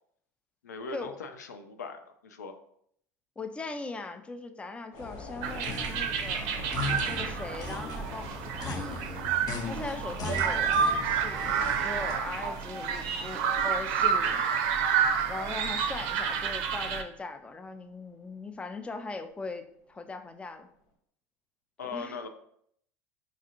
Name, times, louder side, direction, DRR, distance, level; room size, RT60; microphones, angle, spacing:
voice 1, 0.6-2.5 21.8-22.3, left 4 dB, 85° left, 7 dB, 0.4 m, -40 dB
voice 2, 3.4-6.6 7.0-9.0 9.6-14.4 15.3-20.7 21.8-22.2, left 3 dB, 15° left, 7 dB, 0.4 m, -40 dB
sound 1, 4.9-19.5 19.8-20.0, left 2 dB, 70° left, 1.2 m, -50 dB
sound 2, 5.0-12.1, left 3 dB, 45° left, 0.8 m, -39 dB
sound 3, 5.4-17.0, right 7 dB, 60° right, 0.5 m, -29 dB
5.0 x 2.4 x 2.7 m, 0.69 s
hypercardioid pair, 75°, 9 cm